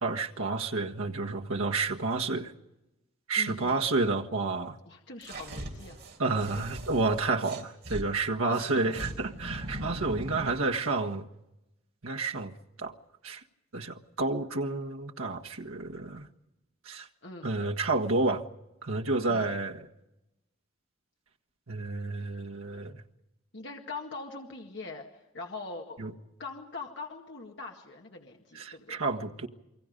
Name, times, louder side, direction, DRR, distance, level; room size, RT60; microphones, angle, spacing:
voice 1, 0.0-2.5 3.3-4.8 6.2-11.3 12.0-12.5 12.8-12.9 13.2-13.4 13.7-16.3 16.8-17.1 17.4-18.4 18.8-19.9 21.7-23.0 26.0-26.1 28.5-29.5, right 3 dB, 80° right, 1.6 m, -30 dB
voice 2, 3.4-3.8 4.9-6.0 6.4-6.6 8.5-8.8 17.2-17.5 19.3-19.5 23.5-26.0 26.4-29.0, left 3 dB, 55° left, 2.0 m, -42 dB
sound 1, 5.2-8.0 8.5-10.6, right 1 dB, 50° right, 4.0 m, -40 dB
28.0 x 23.5 x 5.3 m
head